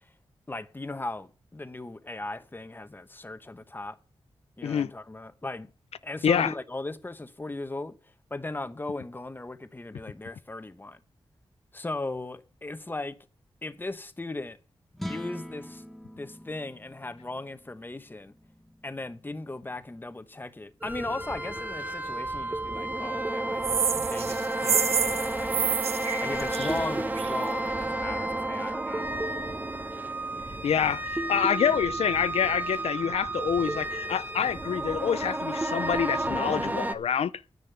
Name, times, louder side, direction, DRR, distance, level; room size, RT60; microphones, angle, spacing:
voice 1, 0.5-4.0 4.6-5.7 6.0-8.0 8.3-11.0 11.7-13.2 13.6-14.6 15.0-15.8 16.2-18.3 18.8-23.7 24.1-25.8 26.2-29.1, left 2 dB, 20° left, 1.0 m, -37 dB
sound 1, 14.9-21.3, left 1 dB, ahead, 1.3 m, -45 dB
sound 2, 20.8-36.9, right 2 dB, 15° right, 1.0 m, -31 dB
sound 3, 23.6-27.4, right 7 dB, 85° right, 0.7 m, -28 dB
voice 2, 30.6-37.3, left 8 dB, 85° left, 0.5 m, -26 dB
10.0 x 8.8 x 6.7 m
wide cardioid pair, 105°, 10 cm